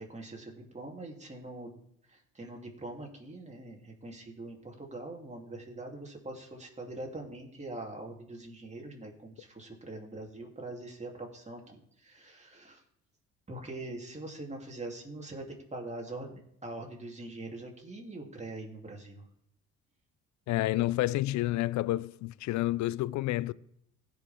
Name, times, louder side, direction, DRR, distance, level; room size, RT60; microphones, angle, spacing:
voice 1, 0.0-1.8 2.1-12.8 13.5-19.3, right 2 dB, 20° right, 3.3 m, -43 dB
voice 2, 20.5-23.5, left 16 dB, 55° left, 0.5 m, -29 dB
16.0 x 5.9 x 3.7 m
supercardioid pair, 65°, 33 cm